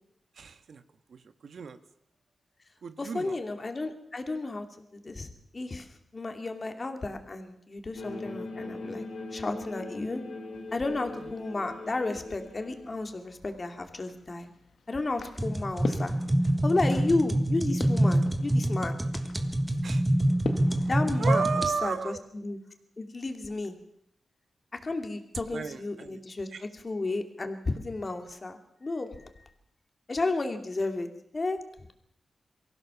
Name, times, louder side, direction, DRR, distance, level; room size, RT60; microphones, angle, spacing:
voice 1, 0.3-0.8 1.1-1.8 2.8-3.4 11.2-11.3 19.8-20.0 20.8-20.9 21.2-22.2 25.5-26.2 26.5-26.6, right 6 dB, 70° right, 10 dB, 1.5 m, -33 dB
voice 2, 3.0-4.7 4.9-5.9 6.1-9.0 9.3-10.2 10.7-14.5 14.9-16.2 16.6-19.0 20.8-21.4 21.8-22.6 23.0-23.8 24.8-29.5 30.1-31.1 31.3-31.6, left 2 dB, 35° left, 6 dB, 2.7 m, -32 dB
sound 1, 7.9-13.0, left 2 dB, 90° left, 4.0 m, -40 dB
sound 2, 10.5-21.1, left 4 dB, 70° left, 1.6 m, -43 dB
sound 3, 15.4-21.7, right 1 dB, 15° right, 1.8 m, -26 dB
23.5 x 15.5 x 7.1 m, 0.71 s
wide cardioid pair, 100°, 0 cm